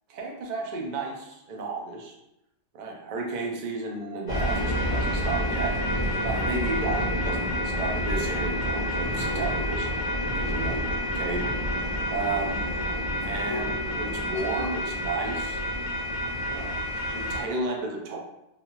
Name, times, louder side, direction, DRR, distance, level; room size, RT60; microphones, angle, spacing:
voice 1, 0.1-2.1 2.7-5.8 6.2-10.0 10.3-10.8 11.1-12.6 13.2-15.6 16.5-16.8 17.1-18.2, right 3 dB, 85° right, 0 dB, 0.4 m, -33 dB
sound 1, 4.3-17.4, equal, 40° left, 0.3 m, -28 dB
2.4 x 2.4 x 2.9 m, 0.89 s
omnidirectional pair, 1.4 m